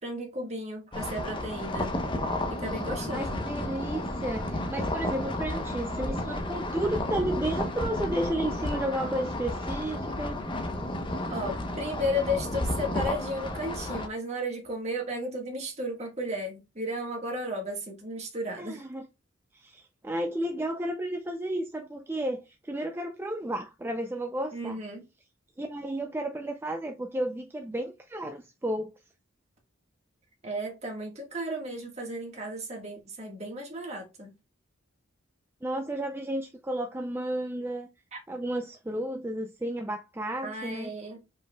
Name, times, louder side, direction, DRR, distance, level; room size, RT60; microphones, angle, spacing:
voice 1, 0.0-1.9 2.5-3.4 11.3-18.8 24.5-25.0 30.4-34.3 38.1-38.2 40.4-41.2, equal, 35° right, 1.5 m, -34 dB
sound 1, 0.9-14.1, left 1 dB, 25° left, 0.8 m, -32 dB
voice 2, 3.1-10.4 18.6-19.1 19.5-24.8 25.6-28.9 35.6-37.9 38.3-40.9, right 1 dB, 10° right, 0.4 m, -32 dB
5.3 x 4.5 x 2.2 m
head